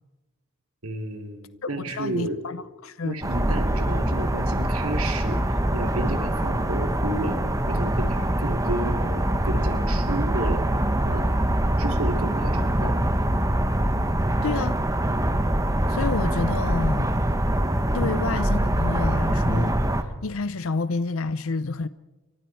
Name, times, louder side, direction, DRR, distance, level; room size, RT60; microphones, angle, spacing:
voice 1, 0.8-2.4 3.0-7.4 7.7-10.6 11.0-11.3 11.8-13.0, right 1 dB, 85° right, 2.8 m, -32 dB
voice 2, 1.9-3.2 14.4-14.8 15.9-17.2 17.9-21.9, left 3 dB, 70° left, 0.6 m, -29 dB
sound 1, 3.2-20.0, right 1 dB, 15° right, 1.2 m, -24 dB
29.5 x 24.5 x 4.6 m
head